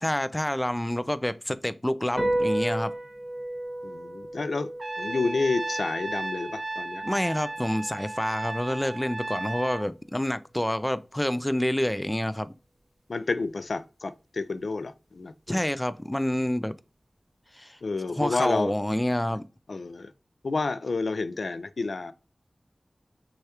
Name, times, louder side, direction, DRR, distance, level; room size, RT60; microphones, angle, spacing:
voice 1, 0.0-2.9 7.0-12.5 15.5-16.7 17.5-17.8 18.2-19.4, left 1 dB, 15° left, 0.4 m, -28 dB
sound 1, 2.2-8.9, right 1 dB, ahead, 1.1 m, -34 dB
voice 2, 3.8-4.7 5.0-7.0 13.1-15.7 17.8-18.7 19.7-20.1 20.4-22.1, left 3 dB, 80° left, 0.4 m, -30 dB
Trumpet, 4.8-9.9, right 2 dB, 55° right, 0.5 m, -35 dB
6.2 x 2.4 x 2.9 m
wide cardioid pair, 50°, 0 cm